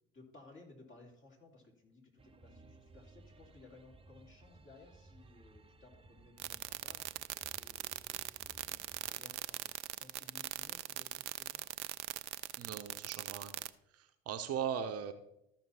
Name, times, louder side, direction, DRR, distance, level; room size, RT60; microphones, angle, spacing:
voice 1, 0.1-11.7, left 3 dB, 35° left, 0 dB, 3.1 m, -60 dB
sound 1, 2.2-9.1, right 2 dB, 15° right, 0.8 m, -60 dB
sound 2, 6.4-13.7, right 15 dB, 80° right, 0.5 m, -40 dB
voice 2, 12.6-13.5 13.9-15.1, right 8 dB, 45° right, 8 dB, 0.9 m, -39 dB
14.0 x 5.9 x 4.2 m, 0.83 s
figure-of-eight pair, 60°, 34 cm